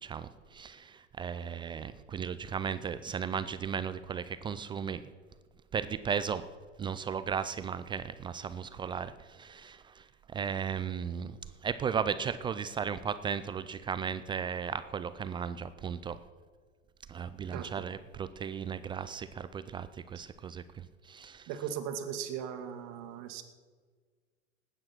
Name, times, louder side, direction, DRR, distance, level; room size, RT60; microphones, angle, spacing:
voice 1, 0.0-5.0 5.7-6.5 6.8-10.1 10.3-11.4 11.6-16.2 17.1-21.5, right 7 dB, 15° right, 13 dB, 0.3 m, -36 dB
voice 2, 17.5-17.9 21.5-23.4, right 8 dB, 45° right, 6 dB, 2.1 m, -38 dB
19.5 x 9.1 x 6.0 m, 1.5 s
hypercardioid pair, 100°, 38 cm